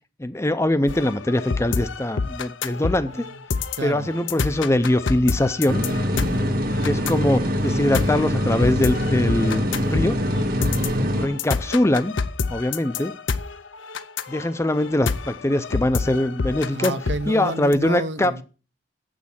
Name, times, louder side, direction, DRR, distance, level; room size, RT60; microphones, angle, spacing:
voice 1, 0.2-3.2 3.8-5.8 6.8-10.2 11.2-12.1 12.5-13.1 14.3-16.9 17.3-18.4, left 1 dB, 15° left, 0.5 m, -22 dB
sound 1, 0.9-17.7, left 4 dB, 80° left, 0.7 m, -28 dB
voice 2, 3.8-4.1 10.8-11.2 16.7-18.4, right 2 dB, 65° right, 0.8 m, -30 dB
sound 2, 5.7-11.3, equal, 50° right, 1.2 m, -23 dB
8.2 x 6.4 x 7.2 m
head